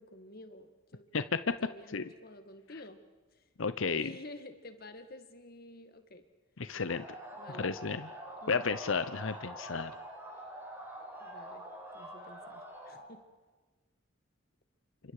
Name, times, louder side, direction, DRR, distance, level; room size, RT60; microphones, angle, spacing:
voice 1, 0.0-1.1 1.6-3.0 3.3-3.4 3.9-6.2 7.3-7.7 8.4-8.7 11.2-11.6 11.9-13.2, left 1 dB, 50° left, 7 dB, 2.1 m, -50 dB
voice 2, 1.1-1.6 1.9-2.1 3.6-4.1 6.6-7.1 7.6-8.1 8.5-9.9, left 5 dB, 75° left, 12 dB, 0.8 m, -32 dB
sound 1, 6.9-13.1, right 1 dB, 10° right, 6.0 m, -46 dB
29.0 x 26.0 x 4.9 m, 1.3 s
head